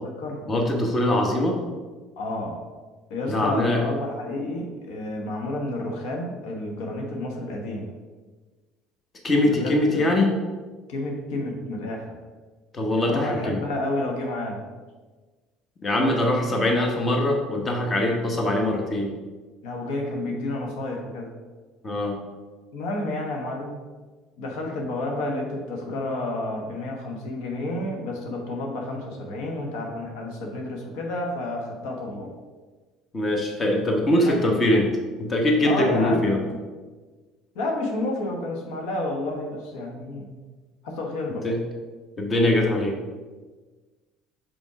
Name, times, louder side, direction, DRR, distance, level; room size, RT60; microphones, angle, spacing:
voice 1, 0.5-1.6 3.3-3.8 9.2-10.3 12.7-13.6 15.8-19.1 21.8-22.2 33.1-34.9 35.2-36.4 41.4-41.6 42.2-42.9, left 1 dB, 30° left, 1 dB, 1.1 m, -22 dB
voice 2, 2.2-2.6 3.1-7.9 9.4-10.1 10.9-12.2 12.9-14.6 16.0-16.5 19.6-21.3 22.7-23.8 24.4-32.3 34.2-34.4 35.6-36.6 37.5-40.4 40.8-41.5, left 2 dB, 80° left, 1 dB, 1.1 m, -30 dB
5.3 x 4.4 x 4.8 m, 1.3 s
supercardioid pair, 100°, 0 cm